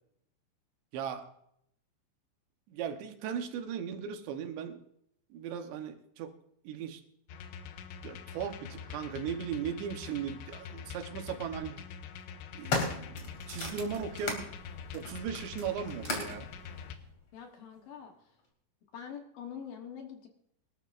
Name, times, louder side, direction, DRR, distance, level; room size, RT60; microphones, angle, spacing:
voice 1, 0.9-1.3 2.7-4.8 5.3-6.3 6.6-7.0 8.0-11.9 12.5-14.5 14.9-16.5, right 7 dB, 75° right, 6 dB, 3.2 m, -37 dB
sound 1, 7.3-17.0, left 7 dB, 80° left, 3.2 m, -45 dB
sound 2, 10.1-10.2 11.3-11.6 12.2-14.5 14.9-16.4 17.3-17.4, left 3 dB, 35° left, 3.0 m, -36 dB
sound 3, 12.8-17.2, right 3 dB, 55° right, 4.0 m, -51 dB
voice 2, 17.3-18.1 18.9-20.3, left 8 dB, 65° left, 3 dB, 2.3 m, -44 dB
23.0 x 13.0 x 2.5 m, 0.74 s
omnidirectional pair, 5.3 m